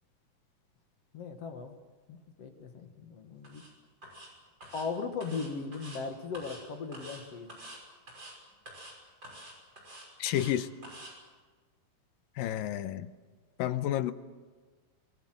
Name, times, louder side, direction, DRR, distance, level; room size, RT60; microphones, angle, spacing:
voice 1, 1.1-1.7 2.1-3.6 4.7-7.5, left 5 dB, 50° left, 6 dB, 2.4 m, -38 dB
sound 1, 3.4-3.7 4.0-4.3 4.6-4.9 5.2-6.0 6.3-6.6 6.9-7.2 7.5-7.8 8.1-8.3 8.7-8.9 9.2-10.5 10.8-11.1, right 1 dB, 30° right, 6.7 m, -47 dB
voice 2, 10.2-10.7 12.4-13.1 13.6-14.1, left 12 dB, 85° left, 12 dB, 2.6 m, -30 dB
25.5 x 20.0 x 7.8 m, 1.4 s
omnidirectional pair, 3.9 m